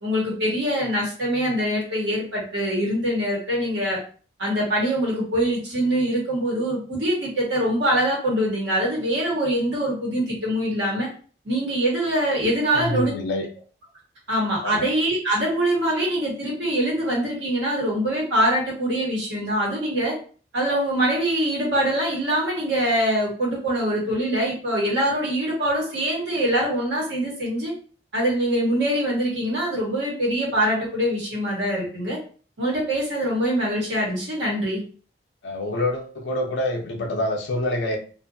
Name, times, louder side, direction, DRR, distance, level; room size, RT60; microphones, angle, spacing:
voice 1, 0.0-4.0 4.4-11.1 11.4-13.1 14.3-20.1 20.5-27.7 28.1-32.2 32.6-34.8, right 1 dB, 80° right, -3 dB, 1.2 m, -23 dB
voice 2, 12.7-13.5 14.6-14.9 35.4-38.0, left 1 dB, 80° left, 2 dB, 0.5 m, -26 dB
2.6 x 2.4 x 2.6 m, 0.40 s
head